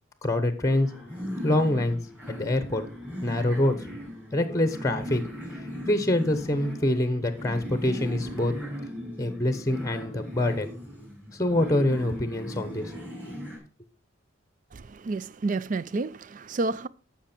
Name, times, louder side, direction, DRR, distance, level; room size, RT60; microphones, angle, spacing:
voice 1, 0.2-0.9 1.4-2.0 2.3-2.8 3.2-3.7 4.3-5.2 5.6-8.5 9.2-10.7 11.3-12.9, left 1 dB, 15° left, 1.0 m, -25 dB
sound 1, 0.6-13.6, equal, 10° right, 4.9 m, -38 dB
voice 2, 14.7-16.9, right 3 dB, 40° right, 0.4 m, -30 dB
13.5 x 5.9 x 4.4 m
head